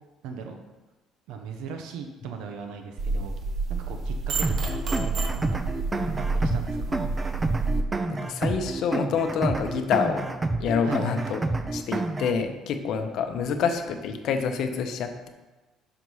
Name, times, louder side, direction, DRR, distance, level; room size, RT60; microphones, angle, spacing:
voice 1, 0.2-0.6 1.3-3.4 3.8-5.6 6.1-7.3 10.8-11.6, right 6 dB, 85° right, 5 dB, 0.7 m, -39 dB
sound 1, 3.0-7.8, right 3 dB, 45° right, 0.7 m, -29 dB
sound 2, 4.4-12.4, right 2 dB, 15° right, 0.4 m, -29 dB
voice 2, 8.1-10.3 10.6-11.4 11.7-15.3, left 6 dB, 60° left, 6 dB, 0.8 m, -27 dB
5.8 x 5.4 x 4.7 m, 1.2 s
cardioid pair, 150°, 0 cm